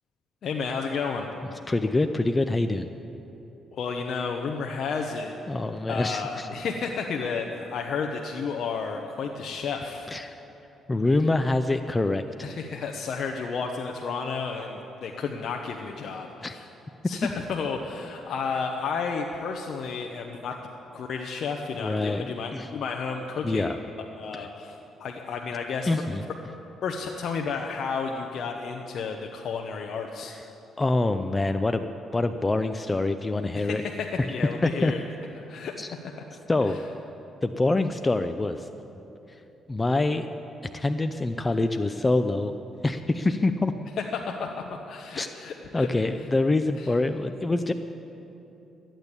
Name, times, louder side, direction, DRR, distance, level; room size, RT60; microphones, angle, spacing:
voice 1, 0.4-1.3 3.7-5.3 5.9-10.1 12.4-16.7 17.0-20.5 20.9-26.0 26.8-30.3 33.5-35.0 35.5-35.7 44.1-45.9 46.8-46.9, left 5 dB, 65° left, 2 dB, 0.9 m, -32 dB
voice 2, 1.7-2.9 5.5-6.5 10.1-10.4 10.9-12.5 16.4-16.5 21.7-22.7 23.4-23.8 24.3-24.4 25.9-26.2 30.3-30.4 30.8-33.8 34.6-34.9 35.8-35.9 36.5-36.8 37.4-38.7 39.7-40.2 40.6-42.6 42.8-43.7 45.1-45.3 45.7-47.7, left 2 dB, 20° left, 8 dB, 0.5 m, -25 dB
13.5 x 9.0 x 8.2 m, 3.0 s
cardioid pair, 90°, 0 cm